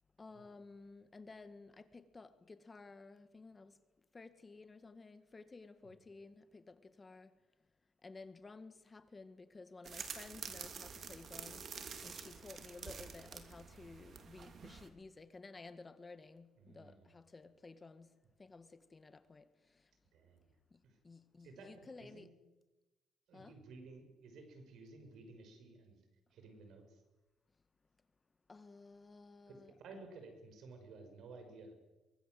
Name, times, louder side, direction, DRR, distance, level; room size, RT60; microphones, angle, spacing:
voice 1, 0.2-3.7 4.1-7.3 8.0-11.7 12.0-18.1 18.4-19.5 21.0-22.3 23.3-23.5 28.5-30.1, left 3 dB, 25° left, 1.8 m, -54 dB
sound 1, 9.8-14.9, right 6 dB, 55° right, 3.0 m, -48 dB
voice 2, 16.6-17.1 20.1-20.5 20.8-21.0 21.4-21.7 22.0-22.3 23.3-26.0 26.3-27.0 29.5-31.7, right 3 dB, 75° right, 5.8 m, -55 dB
24.0 x 20.5 x 7.8 m
cardioid pair, 90°, 0 cm